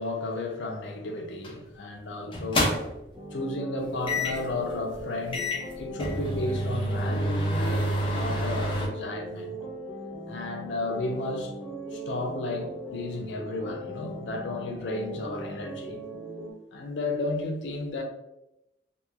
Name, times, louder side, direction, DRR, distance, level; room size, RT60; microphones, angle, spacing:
voice 1, 0.0-2.8 3.3-9.5 10.3-11.5 11.9-16.0 16.7-18.0, left 2 dB, 80° left, 0.5 m, -33 dB
sound 1, 1.4-1.7 2.3-3.1 4.1-4.5 5.0-5.1 5.3-8.9, equal, 30° left, 0.4 m, -28 dB
sound 2, 3.1-16.5, right 1 dB, 5° right, 0.8 m, -40 dB
3.0 x 2.1 x 2.3 m
head